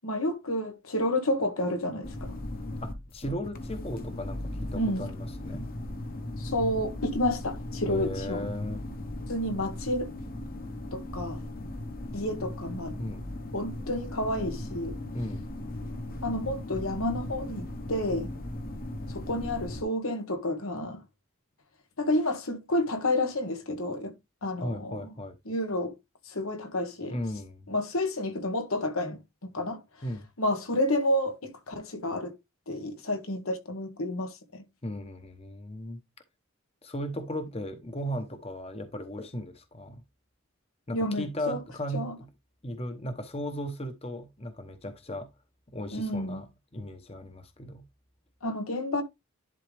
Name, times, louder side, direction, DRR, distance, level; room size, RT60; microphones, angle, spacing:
voice 1, 0.0-2.4 4.7-5.1 6.4-8.5 9.3-10.1 10.9-11.4 12.1-13.0 13.5-15.0 16.2-18.3 19.1-21.0 22.0-24.1 24.4-25.1 25.5-25.9 26.2-27.1 27.7-29.8 30.4-32.3 32.7-34.6 40.9-41.6 41.9-42.1 45.9-46.4 48.4-49.0, left 1 dB, 85° left, 1.6 m, -30 dB
sound 1, 2.0-19.8, left 1 dB, 45° left, 1.1 m, -37 dB
voice 2, 2.8-5.7 7.9-8.8 13.0-13.2 15.1-15.4 24.6-25.4 27.1-27.7 30.0-30.3 34.8-36.0 36.8-40.0 40.9-42.3 42.6-45.3 45.7-46.5 46.7-47.8, equal, 30° left, 1.0 m, -36 dB
11.0 x 3.8 x 3.5 m
head